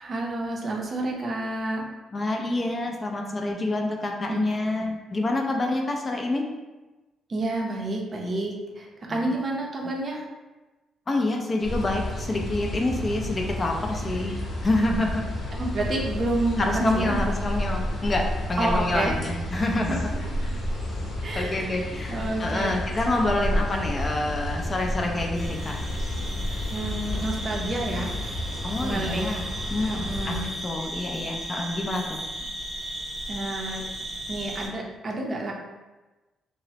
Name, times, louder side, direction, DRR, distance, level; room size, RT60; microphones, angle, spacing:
voice 1, 0.0-1.8 4.3-4.4 7.3-10.3 15.6-17.2 18.6-19.1 19.9-20.2 21.2-23.0 26.7-28.1 28.8-29.3 29.9-30.5 33.3-33.9 34.3-35.5, right 2 dB, 40° right, 0 dB, 0.5 m, -29 dB
voice 2, 2.1-6.4 9.1-9.2 11.1-14.4 14.6-15.2 16.6-20.1 21.3-25.8 28.6-29.4 29.7-30.4 30.6-32.2, left 2 dB, 30° left, 2 dB, 0.4 m, -27 dB
sound 1, 11.6-30.5, left 1 dB, 50° left, 0.8 m, -31 dB
sound 2, 25.3-34.7, right 1 dB, 10° right, 0.7 m, -36 dB
2.9 x 2.0 x 2.7 m, 1.1 s
cardioid pair, 90°, 0 cm